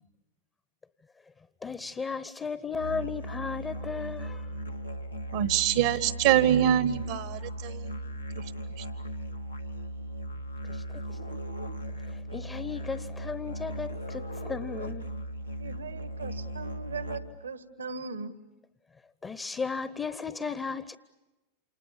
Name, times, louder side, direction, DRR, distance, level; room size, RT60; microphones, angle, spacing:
voice 1, 1.6-4.5 10.7-10.8 11.1-11.4 12.1-15.1 19.2-21.0, left 5 dB, 20° left, 0.9 m, -35 dB
Musical instrument, 2.7-17.5, right 1 dB, 90° left, 1.5 m, -37 dB
voice 2, 5.3-7.9, right 11 dB, 55° right, 1.1 m, -24 dB
voice 3, 15.6-18.3, right 4 dB, 75° right, 1.5 m, -39 dB
28.5 x 28.5 x 7.2 m
figure-of-eight pair, 90°, 0 cm